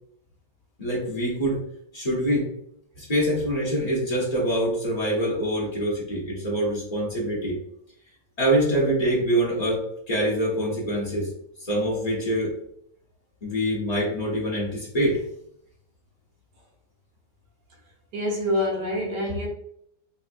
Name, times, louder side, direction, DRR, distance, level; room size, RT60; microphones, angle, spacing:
voice 1, 0.8-1.6 1.9-2.5 3.0-7.6 8.4-11.3 11.6-12.6 13.4-15.2, right 1 dB, 60° left, 0.4 m, -25 dB
voice 2, 18.1-19.5, left 1 dB, 70° right, 1.4 m, -26 dB
3.1 x 2.8 x 2.4 m
omnidirectional pair, 2.0 m